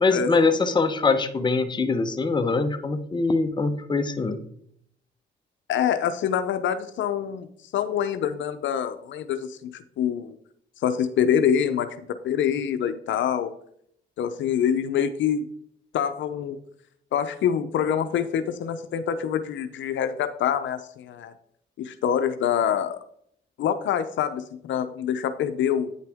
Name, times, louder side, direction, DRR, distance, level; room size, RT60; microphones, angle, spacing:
voice 1, 0.0-4.4, left 4 dB, 20° left, 7 dB, 0.9 m, -23 dB
voice 2, 5.7-7.5 7.7-9.7 10.0-10.3 10.8-13.5 14.2-15.5 15.9-16.6 17.1-21.3 21.8-23.0 23.6-25.9, left 8 dB, 70° left, 9 dB, 0.7 m, -25 dB
9.0 x 6.6 x 3.5 m, 0.68 s
cardioid pair, 90°, 20 cm